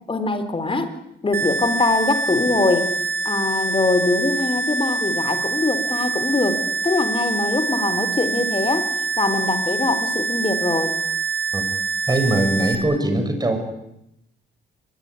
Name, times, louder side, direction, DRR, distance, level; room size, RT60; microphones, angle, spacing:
voice 1, 0.1-1.0 1.2-2.9 3.2-8.9 9.2-11.0, left 3 dB, 25° left, 11 dB, 3.8 m, -22 dB
sound 1, 1.3-12.7, right 3 dB, 55° right, 5.2 m, -25 dB
voice 2, 12.1-13.6, right 1 dB, 20° right, 6 dB, 6.8 m, -21 dB
23.0 x 22.0 x 9.8 m, 0.83 s
cardioid pair, 90°, 20 cm